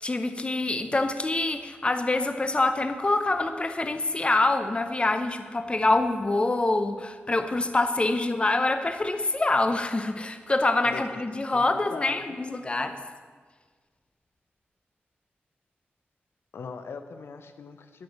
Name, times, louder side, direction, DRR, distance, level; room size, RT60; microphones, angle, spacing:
voice 1, 0.0-13.0, left 2 dB, 25° left, 8 dB, 0.7 m, -25 dB
voice 2, 11.9-12.4 16.5-18.0, left 5 dB, 75° left, 8 dB, 0.6 m, -40 dB
10.5 x 4.9 x 7.0 m, 1.5 s
wide cardioid pair, 80°, 4 cm